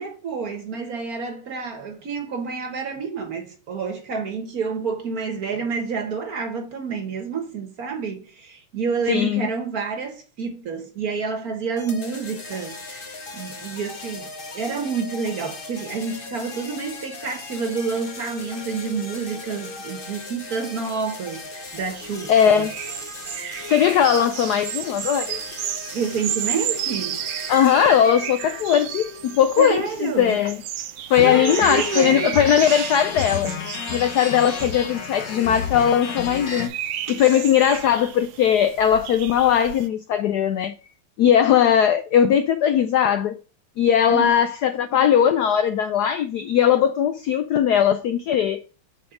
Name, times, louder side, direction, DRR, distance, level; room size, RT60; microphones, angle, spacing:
voice 1, 0.0-22.7 25.9-27.2 29.6-30.5 31.2-32.4 44.1-44.3, right 5 dB, 50° right, 1.4 m, -29 dB
voice 2, 9.1-9.5 22.3-22.7 23.7-25.4 27.5-30.6 31.1-33.5 33.9-40.8 41.2-43.4 43.8-48.6, left 9 dB, 85° left, 0.8 m, -19 dB
sound 1, 11.8-29.7, left 3 dB, 40° left, 0.8 m, -38 dB
sound 2, 21.7-39.9, right 11 dB, 80° right, 1.6 m, -33 dB
sound 3, 31.2-36.7, left 7 dB, 60° left, 1.6 m, -31 dB
7.2 x 4.3 x 5.0 m
omnidirectional pair, 2.4 m